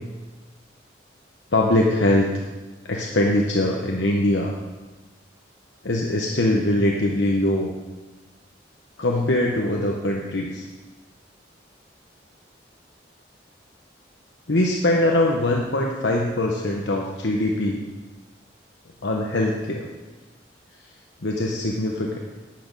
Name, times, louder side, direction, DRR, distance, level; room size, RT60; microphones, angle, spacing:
voice 1, 1.5-2.3 2.9-4.6 5.8-7.7 9.0-10.6 14.5-17.8 19.0-19.9 21.2-22.2, left 1 dB, 75° left, 0 dB, 1.0 m, -22 dB
10.5 x 8.6 x 5.4 m, 1.2 s
head